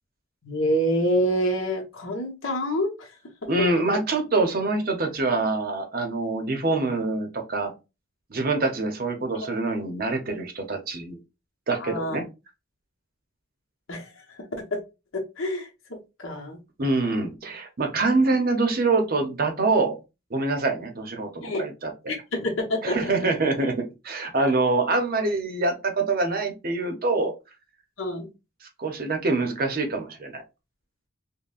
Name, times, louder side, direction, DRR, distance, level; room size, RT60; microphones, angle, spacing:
voice 1, 0.4-3.1 11.8-12.2 13.9-14.1 15.1-16.6 21.4-21.6 22.1-23.1 28.0-28.3, equal, 75° left, 2 dB, 1.0 m, -27 dB
voice 2, 3.5-7.7 8.3-11.2 11.7-12.2 16.8-20.0 20.3-21.9 22.8-27.3 28.8-30.4, right 3 dB, 45° right, 5 dB, 0.7 m, -25 dB
5.3 x 2.2 x 2.4 m, 0.27 s
head